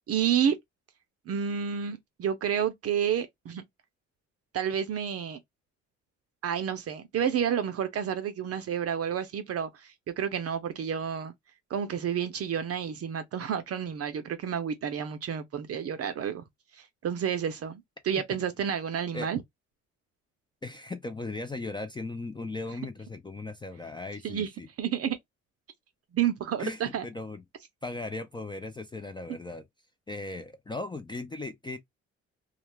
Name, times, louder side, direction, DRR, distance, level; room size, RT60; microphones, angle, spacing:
voice 1, 0.1-0.6 1.3-3.6 4.5-5.4 6.4-11.3 11.7-16.5 16.8-19.4 24.2-24.5 24.8-25.2 26.1-27.0, right 8 dB, 50° right, 0.5 m, -30 dB
voice 2, 20.6-24.7 26.6-27.4 27.8-29.6 30.1-31.8, left 2 dB, 15° left, 0.4 m, -37 dB
2.4 x 2.2 x 3.0 m
cardioid pair, 90°, 30 cm